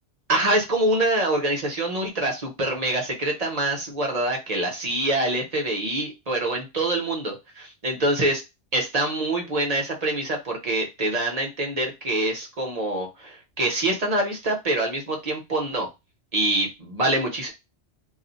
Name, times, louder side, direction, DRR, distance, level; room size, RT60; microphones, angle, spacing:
voice 1, 0.3-8.4 8.7-15.9 16.3-17.5, right 1 dB, 40° right, 2 dB, 0.7 m, -25 dB
2.4 x 2.1 x 3.8 m, 0.24 s
omnidirectional pair, 1.2 m